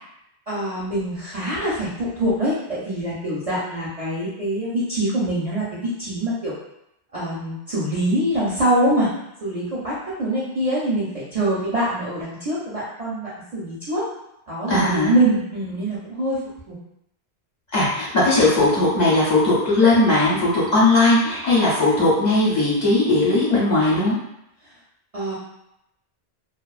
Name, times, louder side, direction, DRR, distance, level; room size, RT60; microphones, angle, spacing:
voice 1, 0.5-6.5 7.1-9.1 9.4-9.9 10.2-14.0 14.5-16.4 16.7-16.8 25.1-25.3, right 1 dB, 45° right, -8 dB, 0.5 m, -24 dB
voice 2, 14.7-15.2 17.7-24.2, left 2 dB, 45° left, -8 dB, 0.8 m, -18 dB
2.5 x 2.2 x 2.3 m, 0.84 s
omnidirectional pair, 1.1 m